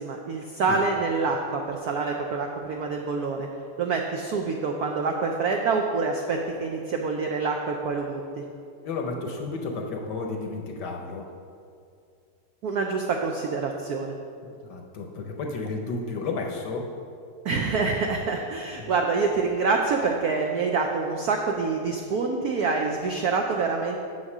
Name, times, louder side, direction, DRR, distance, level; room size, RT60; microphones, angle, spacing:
voice 1, 0.0-3.5 3.8-8.4 12.6-14.1 17.4-24.0, right 4 dB, 85° right, 2 dB, 0.8 m, -26 dB
voice 2, 8.8-11.3 14.6-16.9 18.8-18.9, left 3 dB, 65° left, 2 dB, 1.2 m, -32 dB
7.5 x 6.4 x 6.0 m, 2.4 s
omnidirectional pair, 2.4 m